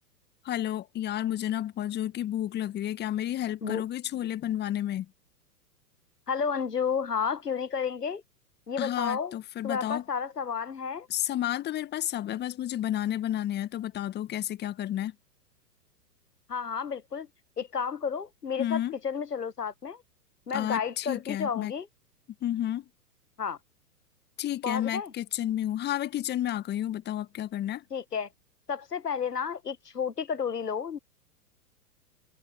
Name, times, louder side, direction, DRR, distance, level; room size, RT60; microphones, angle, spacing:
voice 1, 0.4-5.1 8.8-10.0 11.1-15.1 18.6-18.9 20.5-21.7 22.4-22.9 24.4-27.8, left 12 dB, 20° left, 1.7 m, -31 dB
voice 2, 6.3-8.2 8.7-9.3 9.6-11.1 16.5-17.3 17.6-20.0 20.5-21.9 23.4-23.6 24.6-25.1 27.9-28.3 28.7-31.0, left 6 dB, 80° left, 1.4 m, -31 dB
figure-of-eight pair, 105°, 47 cm